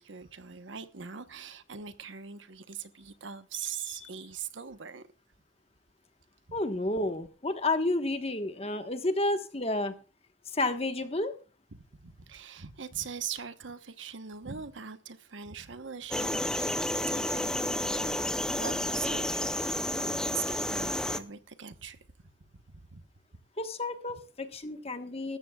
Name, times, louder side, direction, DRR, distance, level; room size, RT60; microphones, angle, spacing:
voice 1, 0.0-5.1 11.7-22.0 22.5-23.0, right 7 dB, 80° right, 1.1 m, -42 dB
voice 2, 6.5-10.0 10.5-11.3 23.6-25.4, left 2 dB, 30° left, 1.3 m, -31 dB
sound 1, 16.1-21.2, left 1 dB, 5° left, 0.6 m, -31 dB
19.0 x 13.5 x 2.4 m
head